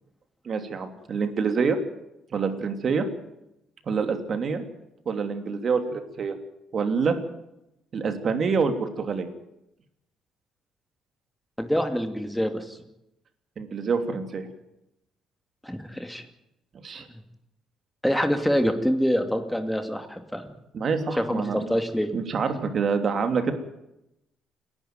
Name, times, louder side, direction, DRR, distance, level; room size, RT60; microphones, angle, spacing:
voice 1, 0.4-1.8 2.3-3.1 3.9-4.6 5.0-6.3 6.7-7.1 7.9-9.3 13.6-14.5 16.8-17.0 20.7-21.7 22.1-23.5, right 5 dB, 40° right, 7 dB, 3.0 m, -26 dB
voice 2, 11.6-12.8 15.6-16.2 18.0-20.5 21.2-22.1, equal, 5° left, 7 dB, 2.7 m, -26 dB
29.0 x 11.5 x 9.5 m, 0.88 s
cardioid pair, 130°, 0 cm